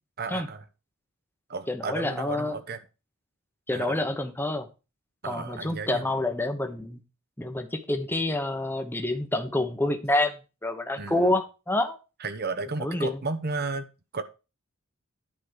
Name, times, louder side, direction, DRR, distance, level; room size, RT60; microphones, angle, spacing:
voice 1, 0.2-0.6 1.5-2.8 3.7-4.1 5.2-6.2 11.0-11.4 12.2-13.9 14.1-14.2, right 3 dB, 45° right, 1.0 m, -33 dB
voice 2, 1.7-2.5 3.7-4.7 5.2-7.0 7.4-12.0 12.8-13.2, left 1 dB, 10° left, 1.0 m, -28 dB
10.5 x 5.1 x 6.4 m
head